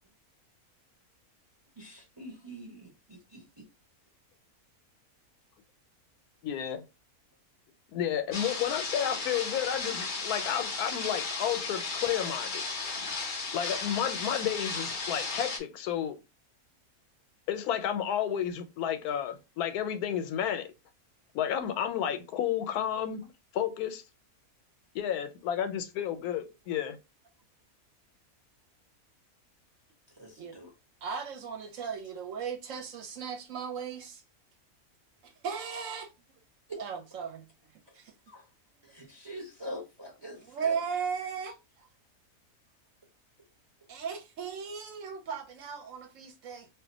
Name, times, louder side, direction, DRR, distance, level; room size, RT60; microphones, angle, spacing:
voice 1, 1.8-3.4 30.2-30.7 36.7-36.8 38.3-38.4 38.8-40.7, equal, 30° right, 0.5 m, -44 dB
voice 2, 6.4-6.8 7.9-12.6 13.5-16.2 17.5-20.7 21.3-23.2 23.5-24.0 24.9-27.0, left 9 dB, 85° left, 1.1 m, -31 dB
sound 1, 8.3-15.6, left 4 dB, 60° left, 0.5 m, -35 dB
voice 3, 31.0-34.2 35.2-36.1 36.8-37.5 37.9-38.1 40.5-41.9 43.9-46.7, right 6 dB, 70° right, 0.9 m, -36 dB
2.5 x 2.1 x 3.8 m
omnidirectional pair, 1.6 m